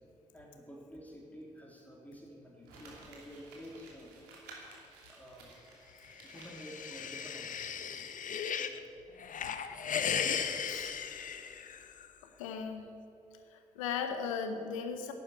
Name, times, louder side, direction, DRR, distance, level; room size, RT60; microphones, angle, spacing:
voice 1, 0.3-4.1 5.1-5.6 6.2-7.7 7.9-8.0 8.5-8.9 9.7-9.8, equal, 10° left, -2 dB, 3.2 m, -50 dB
Crumpling crinkling, 2.6-8.4 8.7-8.8, right 3 dB, 70° right, 2.8 m, -55 dB
sound 1, 6.1-8.8 9.2-12.1, left 7 dB, 50° left, 1.0 m, -36 dB
voice 2, 12.4-12.8 13.5-15.1, left 6 dB, 80° left, 7 dB, 0.9 m, -37 dB
12.0 x 10.5 x 9.5 m, 2.8 s
figure-of-eight pair, 40°, 17 cm